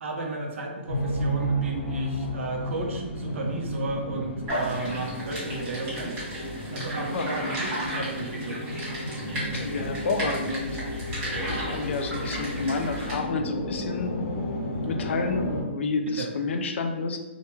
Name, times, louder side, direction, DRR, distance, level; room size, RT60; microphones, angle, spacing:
voice 1, 0.0-6.2 6.7-8.6 16.1-16.3, right 3 dB, 75° right, 1 dB, 0.6 m, -33 dB
sound 1, 0.9-15.6, equal, 55° left, 0.7 m, -32 dB
sound 2, 4.5-13.2, right 1 dB, 25° right, 1.1 m, -35 dB
voice 2, 9.4-10.8 11.5-14.3 14.6-17.2, left 4 dB, 70° left, 6 dB, 0.4 m, -30 dB
2.1 x 2.1 x 3.0 m, 1.1 s
hypercardioid pair, 155°, 7 cm